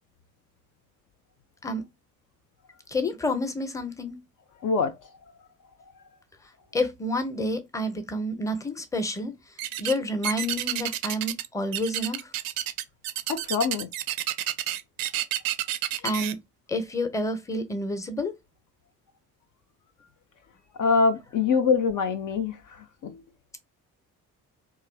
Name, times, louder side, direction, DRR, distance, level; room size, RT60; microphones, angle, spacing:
voice 1, 2.9-4.2 6.7-9.3 9.8-12.3 16.0-16.4 16.7-18.3, left 1 dB, 10° left, 0.7 m, -29 dB
voice 2, 4.6-5.1 13.3-13.9 20.8-23.2, left 5 dB, 50° left, 0.5 m, -24 dB
sound 1, 9.6-10.0 10.2-11.5 11.7-16.3, right 13 dB, 55° right, 0.5 m, -30 dB
3.1 x 2.3 x 2.2 m
hypercardioid pair, 45°, 42 cm